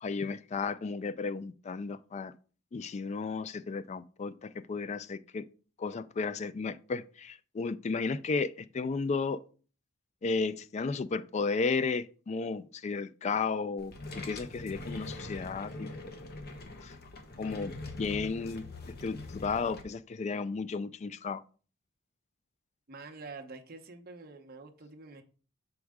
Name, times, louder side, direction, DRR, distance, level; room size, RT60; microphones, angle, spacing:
voice 1, 0.0-2.3 2.7-5.4 5.8-9.4 10.2-15.9 16.8-16.9 17.4-17.7 18.0-18.6 19.0-21.4, left 4 dB, 35° left, 0.3 m, -33 dB
sound 1, 13.8-19.8, left 2 dB, 50° left, 0.9 m, -43 dB
voice 2, 22.9-25.2, right 3 dB, 50° right, 0.8 m, -47 dB
6.3 x 4.7 x 3.5 m
head